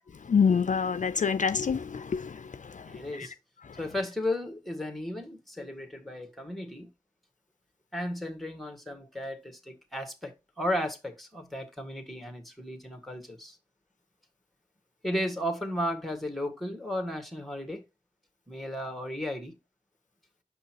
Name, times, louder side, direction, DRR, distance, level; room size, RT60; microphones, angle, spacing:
voice 1, 0.3-2.4 2.7-2.8, left 6 dB, 55° left, 0.4 m, -26 dB
voice 2, 2.9-3.3 3.8-6.9 7.9-10.3 10.6-13.6 15.0-17.8 18.5-19.6, left 1 dB, ahead, 1.8 m, -34 dB
7.0 x 5.5 x 2.9 m
wide cardioid pair, 65°, 15 cm